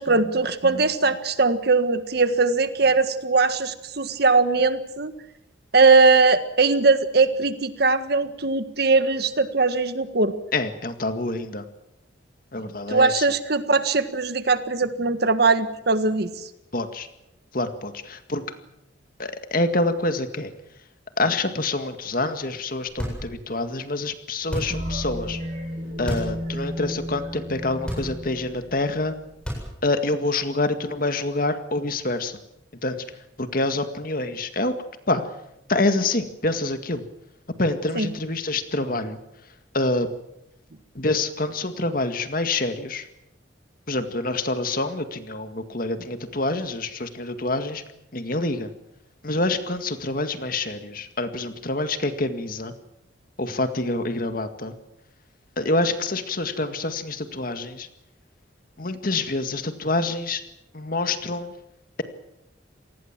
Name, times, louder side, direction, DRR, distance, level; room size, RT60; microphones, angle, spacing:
voice 1, 0.0-5.1 5.7-10.3 12.9-16.5 38.0-38.1, right 3 dB, 55° right, 11 dB, 1.6 m, -20 dB
voice 2, 10.5-11.6 12.5-13.3 16.7-17.1 17.5-18.5 19.2-20.5 21.2-25.4 26.0-29.1 29.8-32.4 32.8-33.1 33.4-35.3 35.7-37.1 37.6-39.2 39.7-40.1 41.0-43.1 43.9-47.8 48.1-48.7 49.2-52.7 53.4-54.7 55.6-57.9 58.8-60.4 60.7-61.5, left 2 dB, 50° left, 9 dB, 2.0 m, -26 dB
sound 1, 23.0-23.6 24.4-25.0 25.9-26.4 26.8-26.9 27.8-28.5 29.3-30.0, equal, 5° left, 8.0 m, -31 dB
sound 2, 24.7-29.4, equal, 40° right, 7.5 m, -33 dB
27.5 x 19.5 x 7.5 m, 0.83 s
head